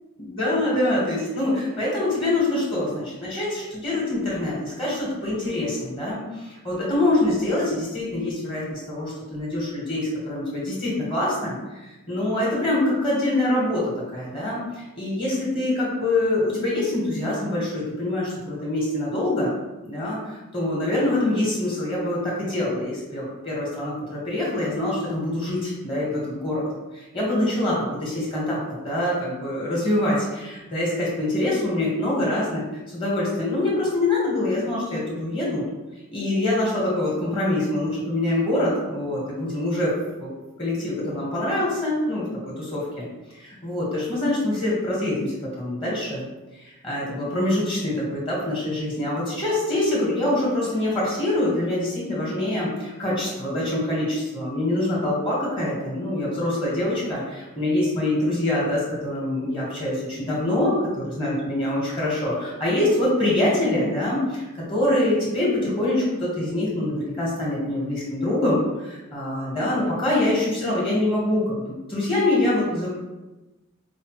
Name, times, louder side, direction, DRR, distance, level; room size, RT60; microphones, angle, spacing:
voice 1, 0.4-11.5 12.1-19.5 19.8-26.6 26.9-28.6 28.8-32.6 32.9-35.6 36.1-39.9 40.2-40.3 40.6-43.1 43.3-46.2 46.6-72.9, left 1 dB, 25° left, -6 dB, 1.0 m, -25 dB
4.8 x 2.1 x 2.9 m, 1.1 s
head